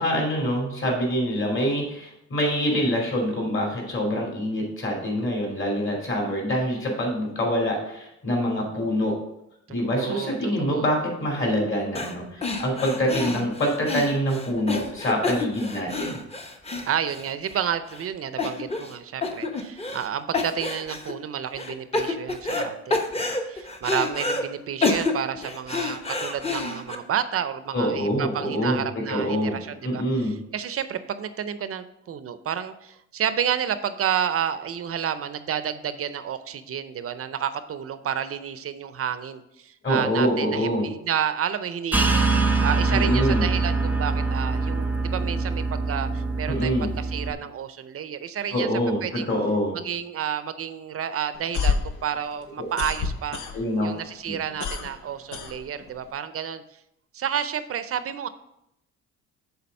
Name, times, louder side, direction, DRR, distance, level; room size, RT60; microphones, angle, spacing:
voice 1, 0.0-9.2 9.7-16.2 27.7-29.6 29.8-30.4 39.8-40.9 42.9-43.4 46.5-46.9 48.5-49.8 52.6-52.7 53.5-53.9 54.2-54.3, equal, 40° left, -1 dB, 2.9 m, -25 dB
voice 2, 9.8-10.9 16.9-48.7 49.0-49.3 49.8-53.4 53.8-56.6 57.1-58.3, right 8 dB, 50° right, 12 dB, 0.6 m, -30 dB
sound 1, 11.9-12.1 12.4-17.6 17.9-18.0 18.4-18.9 19.2-20.1 20.3-21.1 21.6-22.6 22.9-24.4 24.8-26.9, left 3 dB, 20° left, 0.9 m, -28 dB
sound 2, 41.9-47.3, right 3 dB, 5° right, 0.7 m, -24 dB
sound 3, 51.3-53.9 54.2-56.1, left 5 dB, 75° left, 0.8 m, -28 dB
7.0 x 4.0 x 5.3 m, 0.81 s
cardioid pair, 90°, 30 cm